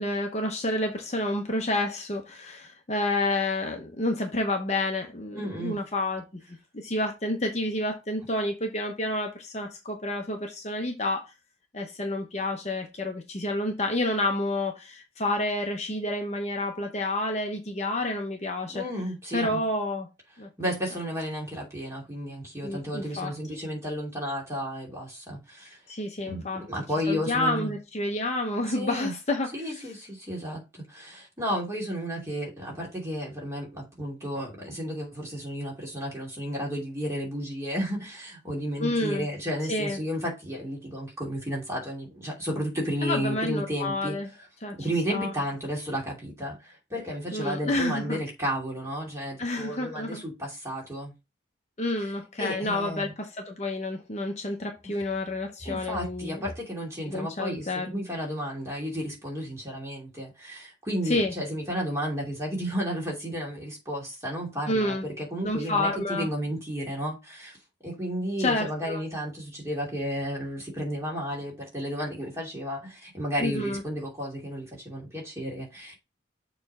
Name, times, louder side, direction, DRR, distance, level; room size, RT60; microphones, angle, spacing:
voice 1, 0.0-6.4 6.7-11.3 11.7-18.8 19.3-20.1 20.4-20.5 22.6-23.3 25.9-26.7 27.1-29.5 38.8-39.3 39.7-40.0 43.0-44.3 44.6-44.7 45.1-45.3 47.3-48.2 49.4-50.2 51.8-56.4 57.1-57.9 61.1-61.3 64.7-65.0 65.4-66.3 68.4-69.0 73.4-73.8, left 1 dB, 35° left, 0.9 m, -29 dB
voice 2, 5.3-5.8 18.7-19.6 20.6-25.8 26.3-27.7 28.7-29.1 29.5-44.1 44.8-51.1 52.0-52.1 52.4-53.1 55.6-67.6 67.8-75.9, equal, 15° right, 2.8 m, -33 dB
7.0 x 3.3 x 5.5 m
head